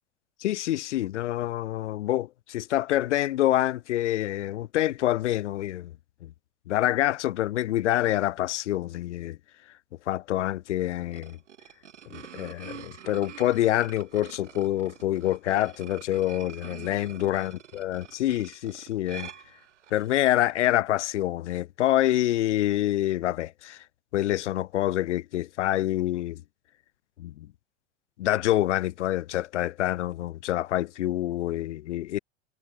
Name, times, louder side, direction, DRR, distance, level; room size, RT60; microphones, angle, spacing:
voice 1, 0.4-5.9 6.2-6.3 6.7-9.4 10.1-11.4 12.1-19.3 19.9-23.8 24.1-26.4 27.2-27.5 28.2-32.2, left 14 dB, 80° left, 0.6 m, -26 dB
sound 1, 10.9-20.2, right 9 dB, 85° right, 1.6 m, -46 dB
hypercardioid pair, 90°, 35 cm